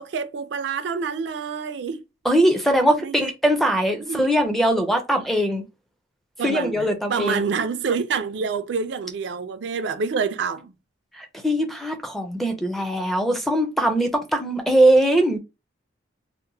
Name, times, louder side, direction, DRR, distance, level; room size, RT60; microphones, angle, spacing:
voice 1, 0.0-2.0 3.0-3.3 4.1-4.3 6.4-10.7, right 5 dB, 70° right, 0.4 m, -27 dB
voice 2, 2.2-5.6 6.4-7.4 11.2-15.4, right 1 dB, ahead, 0.4 m, -21 dB
2.8 x 2.1 x 2.6 m
head